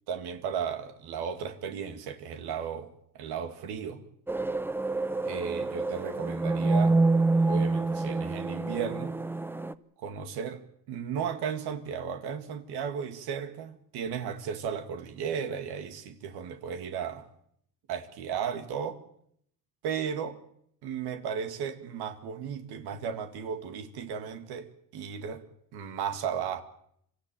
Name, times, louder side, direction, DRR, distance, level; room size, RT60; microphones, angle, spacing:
voice 1, 0.1-2.9 3.1-4.0 5.2-7.0 7.4-9.1 10.0-10.6 10.9-17.3 17.9-19.0 19.8-20.3 20.8-25.4 25.7-26.6, right 7 dB, 75° right, 2.2 m, -35 dB
sound 1, 4.3-9.7, right 3 dB, 5° right, 0.8 m, -27 dB
26.0 x 14.0 x 9.1 m
cardioid pair, 100°, 38 cm